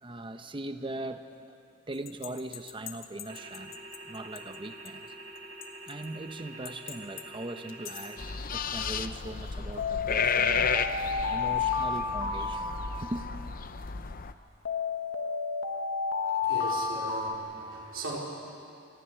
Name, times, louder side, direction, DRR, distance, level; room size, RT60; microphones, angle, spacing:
voice 1, 0.0-1.6 1.9-3.8 4.0-5.1 5.9-8.2 8.5-10.8 11.3-12.7 13.0-13.2, right 1 dB, 25° right, 8 dB, 0.8 m, -40 dB
sound 1, 2.1-4.0 4.4-4.5 4.9-5.0 5.6-6.0 6.7-7.2 7.7-8.1 9.8-13.5 14.7-17.3, left 5 dB, 65° left, 1.4 m, -32 dB
sound 2, 3.3-8.4, right 2 dB, 50° right, 1.6 m, -46 dB
sound 3, 8.2-14.3, left 6 dB, 45° left, 0.6 m, -32 dB
voice 2, 16.4-18.2, right 2 dB, 65° right, -3 dB, 4.2 m, -38 dB
27.5 x 11.0 x 9.9 m, 2.6 s
head